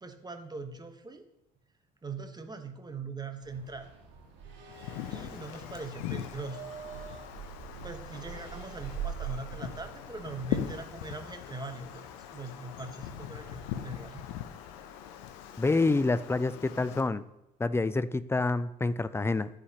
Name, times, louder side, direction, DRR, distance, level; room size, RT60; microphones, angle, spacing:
voice 1, 0.0-1.2 2.0-3.9 5.1-6.6 7.8-14.2, right 3 dB, 20° right, 7 dB, 1.2 m, -41 dB
sound 1, 3.4-11.0, right 8 dB, 60° right, 2.1 m, -43 dB
Wind, 4.7-17.0, left 11 dB, 70° left, 0.7 m, -41 dB
voice 2, 15.6-17.2 17.6-19.5, left 3 dB, 10° left, 15 dB, 0.4 m, -27 dB
13.5 x 5.0 x 2.9 m, 0.90 s
hypercardioid pair, 55°, 21 cm